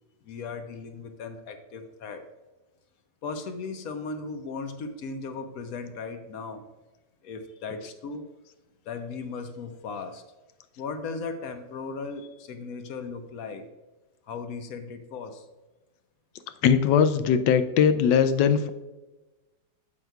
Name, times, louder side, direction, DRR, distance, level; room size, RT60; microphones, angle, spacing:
voice 1, 0.2-2.2 3.2-6.6 7.2-8.2 8.9-10.2 10.8-13.6 14.3-15.4, left 4 dB, 65° left, 8 dB, 1.0 m, -37 dB
voice 2, 16.6-18.7, left 7 dB, 85° left, 10 dB, 1.2 m, -20 dB
8.8 x 7.9 x 2.3 m, 1.1 s
omnidirectional pair, 1.9 m